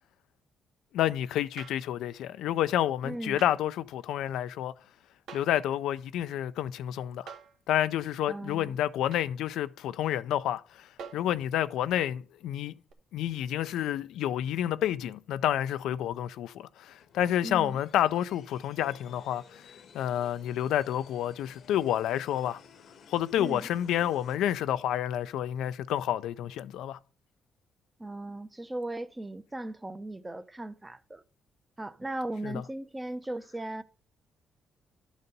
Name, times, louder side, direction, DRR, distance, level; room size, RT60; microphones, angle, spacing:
voice 1, 0.9-4.7 5.3-7.3 7.7-12.7 13.1-19.6 19.9-22.6 23.1-27.0 32.4-32.6, left 11 dB, 85° left, 0.4 m, -29 dB
sound 1, 1.6-1.9 3.4-3.6 5.3-5.6 7.3-7.6 9.1-9.3 11.0-11.3 12.9-13.0, right 6 dB, 75° right, 1.2 m, -46 dB
voice 2, 3.0-3.4 8.3-8.8 17.4-17.8 23.4-23.7 28.0-31.2 31.8-33.8, right 1 dB, 15° right, 0.6 m, -37 dB
sound 2, 17.0-24.4, left 6 dB, 60° left, 0.9 m, -55 dB
12.0 x 4.1 x 5.2 m
cardioid pair, 90°, 0 cm